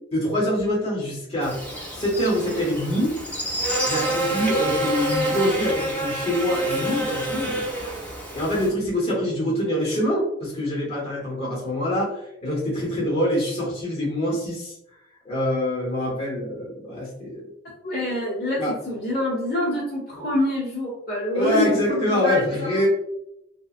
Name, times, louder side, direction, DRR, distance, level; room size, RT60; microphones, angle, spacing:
voice 1, 0.1-1.6 1.9-3.1 3.8-7.6 8.3-14.7 15.2-17.5 18.6-18.7 21.3-22.9, left 1 dB, 35° left, -5 dB, 1.0 m, -25 dB
Buzz, 1.4-8.7, right 1 dB, 10° left, 0.6 m, -27 dB
voice 2, 17.8-22.9, left 1 dB, 55° left, -5 dB, 1.0 m, -26 dB
2.8 x 2.2 x 2.4 m, 0.82 s
head